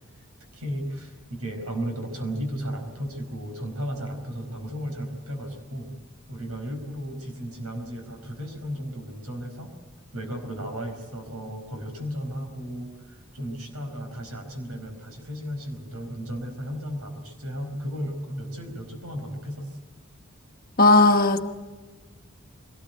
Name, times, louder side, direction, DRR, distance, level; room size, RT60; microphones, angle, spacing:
voice 1, 0.5-5.9 6.3-9.7 10.1-19.8, equal, 85° right, 5 dB, 4.9 m, -34 dB
voice 2, 20.8-21.4, left 2 dB, 40° left, 6 dB, 1.1 m, -16 dB
22.5 x 18.5 x 9.2 m, 1.4 s
head